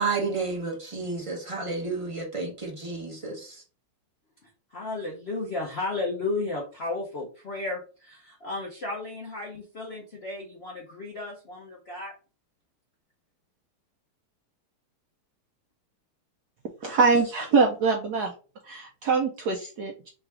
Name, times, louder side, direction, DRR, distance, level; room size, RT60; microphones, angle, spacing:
voice 1, 0.0-3.6, right 4 dB, 30° right, -2 dB, 0.5 m, -31 dB
voice 2, 4.7-12.1, left 2 dB, 75° left, -2 dB, 0.5 m, -33 dB
voice 3, 16.8-18.3 18.6-20.1, right 4 dB, 80° right, 1 dB, 0.9 m, -24 dB
3.8 x 2.4 x 4.5 m, 0.35 s
omnidirectional pair, 2.4 m